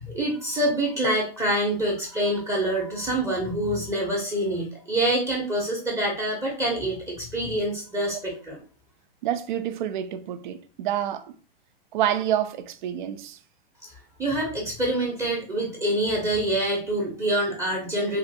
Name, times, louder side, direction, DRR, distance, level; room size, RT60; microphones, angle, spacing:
voice 1, 0.0-8.6 14.2-18.2, right 1 dB, 10° right, 0.7 m, -26 dB
voice 2, 9.2-11.3 11.9-13.4, right 10 dB, 55° right, 0.5 m, -28 dB
3.2 x 2.5 x 2.7 m
hypercardioid pair, 115°, 30 cm